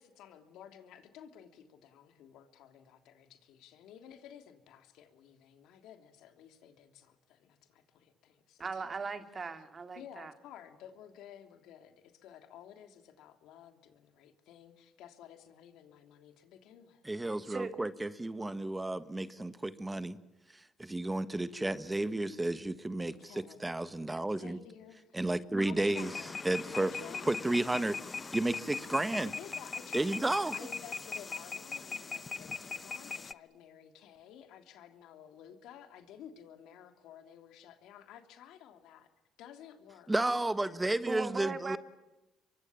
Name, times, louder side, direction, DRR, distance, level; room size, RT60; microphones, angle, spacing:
voice 1, 0.0-8.9 9.9-17.0 22.9-23.7 24.3-25.3 25.6-26.3 26.7-27.4 29.2-30.2 30.5-39.1 39.4-40.1, left 9 dB, 80° left, 7 dB, 3.1 m, -53 dB
voice 2, 8.6-10.3 17.2-17.7 41.1-41.8, right 4 dB, 35° right, 9 dB, 2.5 m, -39 dB
voice 3, 17.0-20.2 20.8-24.6 25.1-26.1 26.4-26.9 27.3-28.0 28.3-29.3 29.9-30.5 40.1-41.8, right 2 dB, 15° right, 13 dB, 1.5 m, -32 dB
sound 1, 25.9-33.3, left 4 dB, 35° left, 0.9 m, -40 dB
25.0 x 23.5 x 8.9 m, 1.0 s
supercardioid pair, 75°, 0 cm